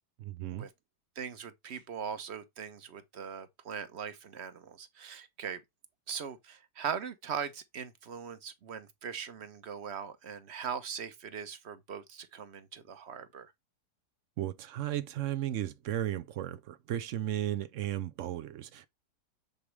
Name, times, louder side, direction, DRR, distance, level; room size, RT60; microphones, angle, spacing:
voice 1, 0.2-0.7 14.4-18.9, right 12 dB, 75° right, 0.7 m, -35 dB
voice 2, 1.2-5.6 6.1-13.5, right 7 dB, 45° right, 1.1 m, -40 dB
9.5 x 4.9 x 3.3 m
omnidirectional pair, 1.9 m